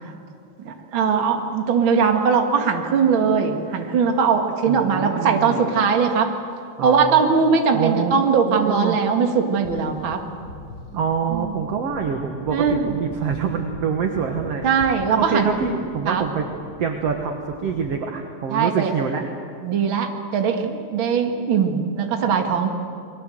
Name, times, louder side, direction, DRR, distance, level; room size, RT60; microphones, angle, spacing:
voice 1, 0.6-6.3 6.8-10.2 11.3-11.5 12.5-13.0 14.6-15.5 16.1-16.2 18.5-18.9 19.6-22.7, right 6 dB, 40° right, 4 dB, 1.9 m, -20 dB
voice 2, 4.7-5.7 6.8-7.4 7.7-9.0 10.9-14.6 15.2-16.5 16.8-19.2, right 6 dB, 55° right, 4 dB, 1.8 m, -26 dB
sound 1, 9.6-18.0, left 3 dB, 55° left, 1.2 m, -41 dB
29.0 x 22.0 x 7.8 m, 2.4 s
omnidirectional pair, 4.6 m